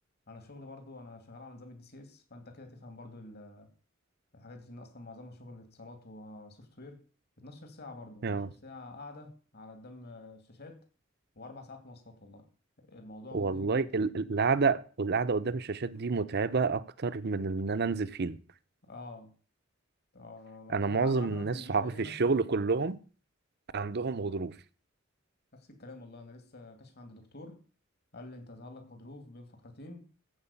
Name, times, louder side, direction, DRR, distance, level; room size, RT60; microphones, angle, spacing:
voice 1, 0.3-3.7 4.3-7.0 7.4-10.8 11.4-12.5 12.8-14.0 18.8-19.3 20.1-22.3 25.5-27.6 28.1-30.1, left 2 dB, 55° left, 2.4 m, -48 dB
voice 2, 13.3-18.4 20.7-23.0 23.7-24.5, right 4 dB, 55° right, 0.7 m, -29 dB
14.5 x 4.9 x 8.3 m
head